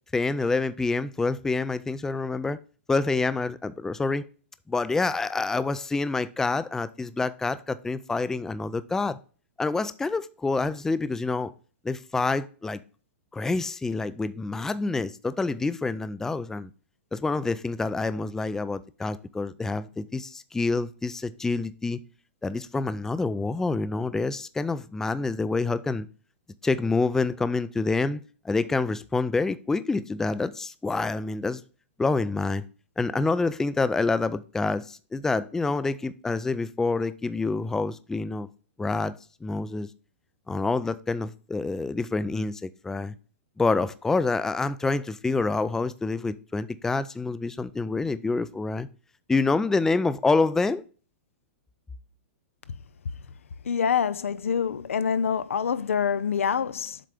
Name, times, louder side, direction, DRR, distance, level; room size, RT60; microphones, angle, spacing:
voice 1, 0.1-2.6 2.9-4.3 4.7-9.2 9.6-11.5 11.8-12.8 13.3-16.7 17.1-22.0 22.4-26.1 26.6-31.6 32.0-32.6 33.0-38.5 38.8-39.1 39.4-39.9 40.5-43.1 43.6-48.9 49.3-50.8, left 3 dB, 5° left, 0.3 m, -27 dB
voice 2, 53.6-57.0, left 7 dB, 90° left, 0.5 m, -26 dB
7.5 x 3.4 x 5.0 m
hypercardioid pair, 130°, 7 cm